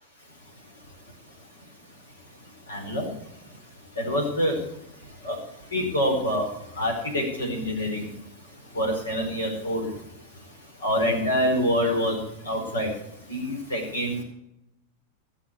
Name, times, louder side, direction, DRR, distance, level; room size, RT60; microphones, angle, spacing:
voice 1, 2.7-3.1 4.0-4.6 5.2-5.3 5.7-6.5 6.8-8.1 8.8-9.9 10.8-12.2 12.5-12.9 13.3-14.2, equal, 75° left, 2 dB, 4.5 m, -26 dB
16.5 x 7.3 x 8.3 m, 0.84 s
figure-of-eight pair, 90°, 0 cm